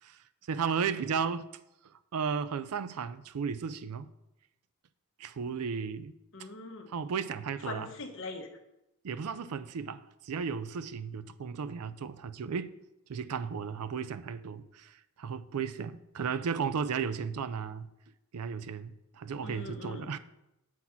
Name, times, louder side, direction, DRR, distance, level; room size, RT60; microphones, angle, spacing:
voice 1, 0.5-1.5 2.1-4.1 5.2-6.1 6.9-7.9 9.0-12.7 13.1-17.9 18.3-20.2, right 6 dB, 85° right, 0.4 m, -34 dB
voice 2, 6.3-6.9 7.7-8.5 19.4-20.1, left 2 dB, 60° left, 0.9 m, -41 dB
7.6 x 4.1 x 5.7 m
head